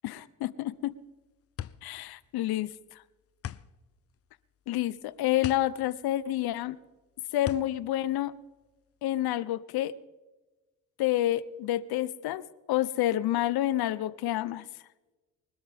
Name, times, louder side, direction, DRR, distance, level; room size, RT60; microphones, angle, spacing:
voice 1, 0.0-0.9 1.8-2.7 4.7-6.8 7.3-8.3 9.0-10.0 11.0-12.4 12.7-14.6, left 14 dB, 80° left, 17 dB, 0.7 m, -28 dB
sound 1, 0.8-9.1, left 10 dB, 40° left, 0.5 m, -43 dB
24.0 x 13.0 x 3.5 m, 1.1 s
cardioid pair, 105°, 37 cm